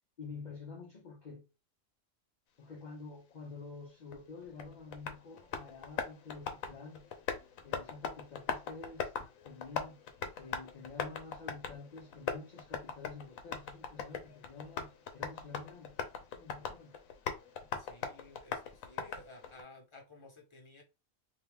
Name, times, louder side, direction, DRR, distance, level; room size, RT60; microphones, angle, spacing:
voice 1, 0.2-1.5 2.6-7.1 7.6-9.1 9.4-10.1 10.4-16.0 16.3-17.0, left 4 dB, 45° left, 0.7 m, -48 dB
Tap, 4.1-19.6, left 6 dB, 85° left, 1.1 m, -41 dB
voice 2, 17.8-20.8, left 2 dB, 25° left, 1.0 m, -55 dB
2.8 x 2.8 x 3.4 m
omnidirectional pair, 1.4 m